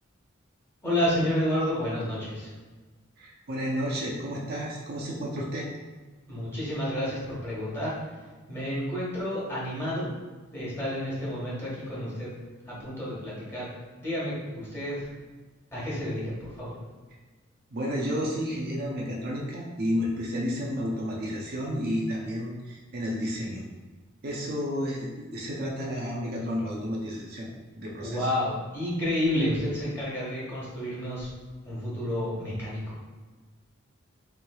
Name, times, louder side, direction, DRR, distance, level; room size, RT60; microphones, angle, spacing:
voice 1, 0.8-2.5 6.3-7.9 8.5-10.1 10.5-12.3 12.7-13.7 14.0-15.1 15.7-16.7 28.0-31.3 31.6-32.8, left 1 dB, 10° left, -8 dB, 1.2 m, -30 dB
voice 2, 3.2-5.7 17.7-23.6 24.2-27.5 27.8-28.3, equal, 50° right, -3 dB, 0.5 m, -31 dB
3.7 x 3.1 x 2.3 m, 1.3 s
head